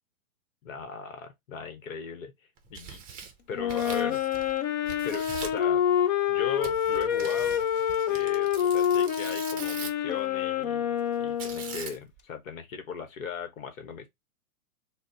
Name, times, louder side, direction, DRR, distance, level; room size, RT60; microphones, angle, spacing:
voice 1, 0.6-2.3 2.7-3.0 3.5-4.2 5.0-5.8 6.3-7.7 8.1-14.1, left 5 dB, 65° left, 1.1 m, -38 dB
Tearing, 2.6-4.6 4.9-5.6 6.6-10.1 11.4-12.2, right 7 dB, 20° right, 0.6 m, -42 dB
Wind instrument woodwind instrument, 3.5-11.9, left 9 dB, 30° left, 0.4 m, -27 dB
4.0 x 2.1 x 3.9 m
hypercardioid pair, 130°, 44 cm